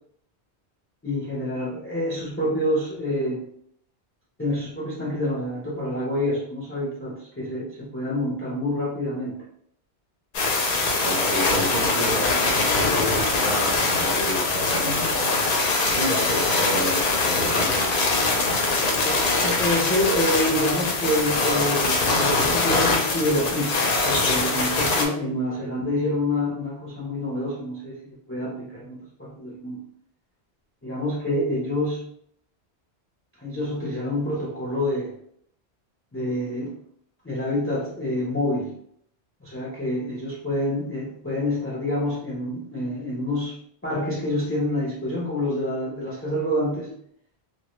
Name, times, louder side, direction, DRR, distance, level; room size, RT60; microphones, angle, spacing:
voice 1, 1.0-3.4 4.4-9.4 19.0-29.8 30.8-32.0 33.4-35.1 36.1-36.7 37.2-38.7 39.4-43.6 43.8-46.9, left 1 dB, 20° left, -4 dB, 0.3 m, -27 dB
sound 1, 10.3-25.1, left 3 dB, 60° left, 0.7 m, -23 dB
voice 2, 11.0-15.6 15.9-17.8, equal, 40° right, -4 dB, 0.6 m, -30 dB
2.2 x 2.1 x 2.9 m, 0.67 s
omnidirectional pair, 1.1 m